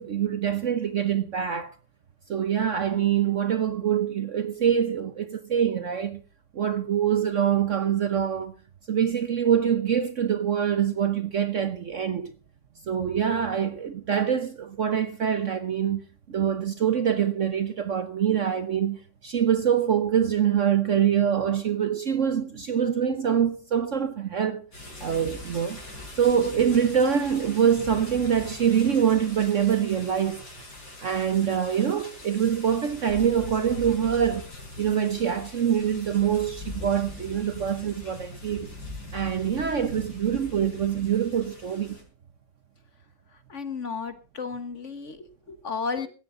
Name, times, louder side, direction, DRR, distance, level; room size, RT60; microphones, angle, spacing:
voice 1, 0.0-1.7 2.3-6.2 6.5-8.5 8.9-12.3 12.9-24.6 25.0-25.8 26.2-30.4 31.0-34.4 34.8-38.7 39.1-42.0, right 8 dB, 50° right, 1.0 m, -25 dB
sound 1, 24.7-42.0, left 2 dB, 65° left, 5.9 m, -42 dB
voice 2, 43.5-46.1, left 5 dB, 45° left, 1.5 m, -33 dB
17.0 x 13.5 x 3.8 m
omnidirectional pair, 1.9 m